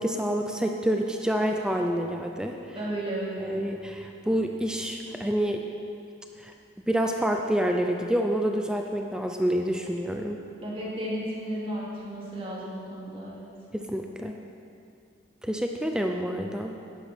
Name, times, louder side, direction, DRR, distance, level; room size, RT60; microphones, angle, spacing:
voice 1, 0.0-2.6 3.4-5.6 6.4-10.4 13.7-14.4 15.4-16.8, equal, 5° right, 3 dB, 0.5 m, -28 dB
voice 2, 2.7-3.6 10.6-13.5, right 1 dB, 30° right, -6 dB, 2.7 m, -33 dB
10.5 x 10.5 x 6.1 m, 2.5 s
head